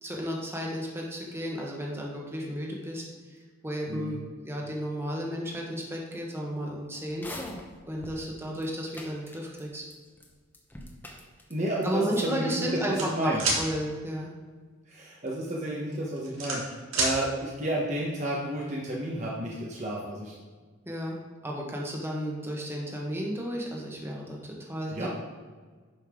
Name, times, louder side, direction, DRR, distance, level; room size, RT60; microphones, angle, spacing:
voice 1, 0.0-7.3 7.9-9.8 11.8-14.3 20.9-25.1, equal, 10° right, -2 dB, 1.3 m, -33 dB
sound 1, 7.1-8.2 8.6-8.7 8.9-9.9 10.2-10.3 10.5-11.5 11.8-11.9, left 1 dB, 10° left, 1.0 m, -42 dB
voice 2, 11.5-12.7 13.0-13.4 14.9-20.4 24.9-25.1, right 1 dB, 35° right, -4 dB, 1.1 m, -31 dB
sound 2, 13.0-13.6 15.3-15.5 15.9-17.1, right 3 dB, 85° right, 2.3 m, -27 dB
11.0 x 5.4 x 3.7 m, 1.5 s
head